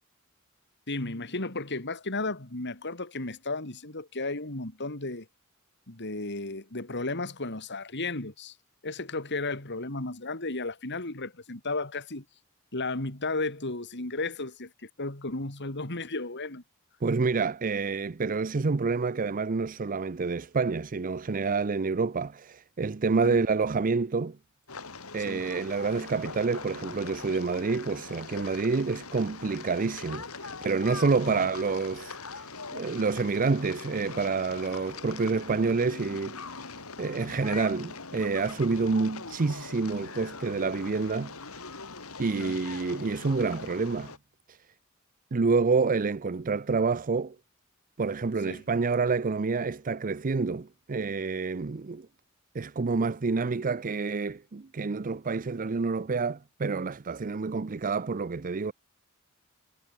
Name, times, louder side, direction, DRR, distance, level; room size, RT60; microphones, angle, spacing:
voice 1, 0.9-5.3 5.9-8.5 8.8-12.2 12.7-14.7 15.0-16.6 23.2-23.4 25.3-25.4 31.3-31.4 42.4-42.6 48.5-48.6, left 2 dB, 55° left, 3.8 m, -34 dB
voice 2, 17.0-24.4 25.1-36.4 37.0-41.3 42.2-44.1 44.5-44.6 45.3-47.4 48.0-52.1 52.5-58.7, right 4 dB, 40° right, 0.5 m, -28 dB
sound 1, 24.7-44.2, left 4 dB, 80° left, 4.7 m, -42 dB
head